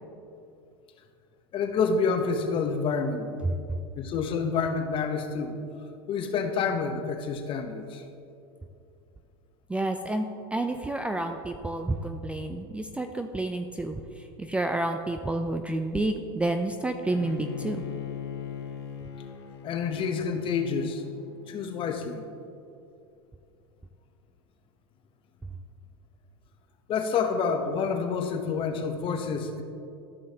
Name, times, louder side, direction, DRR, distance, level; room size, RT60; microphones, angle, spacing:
voice 1, 1.5-3.3 4.0-5.6 6.1-8.0 19.6-21.0 21.5-22.2 26.9-29.6, left 5 dB, 40° left, 6 dB, 0.9 m, -28 dB
voice 2, 9.7-10.3 10.5-17.8, right 2 dB, 10° right, 6 dB, 0.4 m, -30 dB
Bowed string instrument, 17.1-22.2, left 8 dB, 90° left, 0.8 m, -40 dB
13.5 x 5.6 x 2.8 m, 2.6 s
hypercardioid pair, 105°, 13 cm